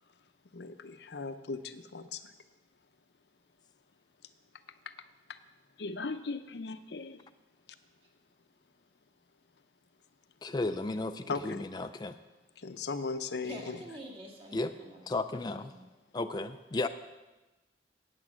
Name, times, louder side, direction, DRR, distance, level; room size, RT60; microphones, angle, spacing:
voice 1, 0.5-2.2 5.8-7.2 11.3-11.7 12.6-13.8, left 4 dB, 70° left, 10 dB, 0.7 m, -38 dB
voice 2, 10.4-12.2 14.5-14.7 15.1-15.7 16.1-16.9, left 2 dB, 25° left, 7 dB, 0.4 m, -34 dB
voice 3, 13.4-15.1 15.7-15.8, right 1 dB, 35° right, -2 dB, 1.9 m, -47 dB
8.9 x 8.3 x 7.4 m, 1.1 s
head